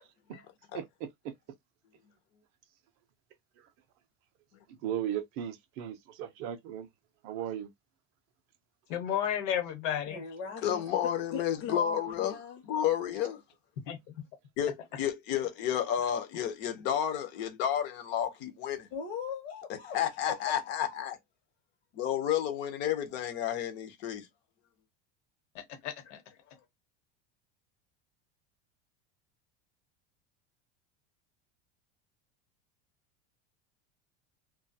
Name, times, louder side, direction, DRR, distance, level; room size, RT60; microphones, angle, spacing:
voice 1, 0.7-1.3 4.7-6.9 7.2-7.7, right 10 dB, 40° right, 0.4 m, -37 dB
voice 2, 8.9-10.2 13.9-14.0 25.5-26.2, left 9 dB, 80° left, 1.0 m, -32 dB
voice 3, 10.1-12.6 18.9-21.1, left 7 dB, 55° left, 0.8 m, -41 dB
voice 4, 10.6-12.4 12.7-13.4 14.6-18.9 19.9-21.2 21.9-24.3, left 10 dB, 30° left, 0.4 m, -31 dB
2.2 x 2.2 x 2.6 m
cardioid pair, 175°, 37 cm